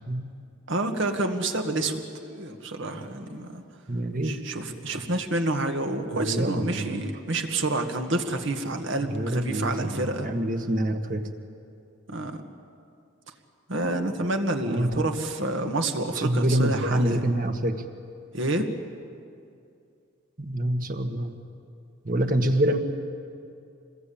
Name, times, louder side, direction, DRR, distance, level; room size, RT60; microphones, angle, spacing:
voice 1, 0.7-3.6 4.2-10.3 12.1-12.4 13.7-17.2 18.3-18.7, right 2 dB, 65° right, 5 dB, 1.9 m, -28 dB
voice 2, 3.9-4.4 6.1-7.0 9.0-11.3 14.6-15.1 16.1-17.8 20.4-21.4 22.0-22.8, right 1 dB, 40° right, 6 dB, 1.5 m, -26 dB
26.5 x 20.5 x 8.7 m, 2.4 s
head